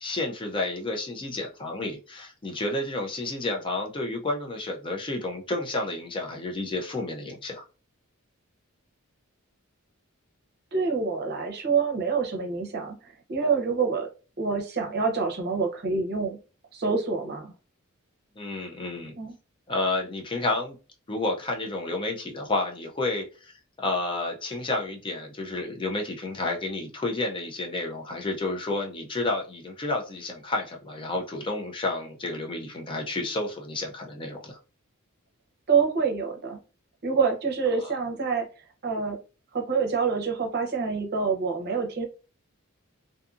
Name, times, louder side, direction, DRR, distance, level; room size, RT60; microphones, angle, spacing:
voice 1, 0.0-7.7 18.4-19.1 19.7-20.8 21.1-34.6 37.7-37.9, left 2 dB, 25° left, 0.4 m, -31 dB
voice 2, 10.7-14.1 14.4-16.4 16.7-17.5 19.2-19.3 35.7-36.6 37.0-38.5 38.8-39.2 39.5-42.1, right 5 dB, 50° right, 0.7 m, -26 dB
2.6 x 2.5 x 2.4 m
head